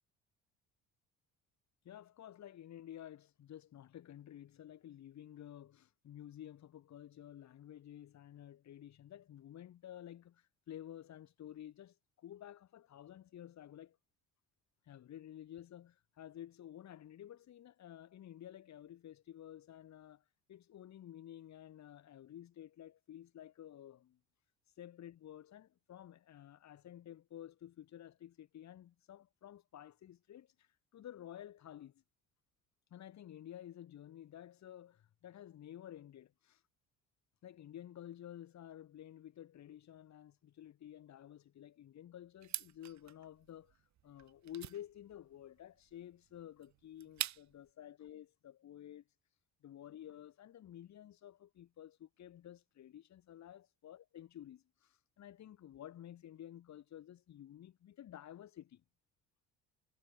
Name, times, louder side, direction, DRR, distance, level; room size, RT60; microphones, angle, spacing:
voice 1, 1.8-14.0 14.9-20.2 20.5-24.2 24.8-32.0 32.9-36.6 37.4-43.8 44.0-49.0 49.6-58.8, left 11 dB, 60° left, 6.0 m, -52 dB
sound 1, 42.4-47.7, right 12 dB, 60° right, 2.9 m, -45 dB
supercardioid pair, 80°, 31 cm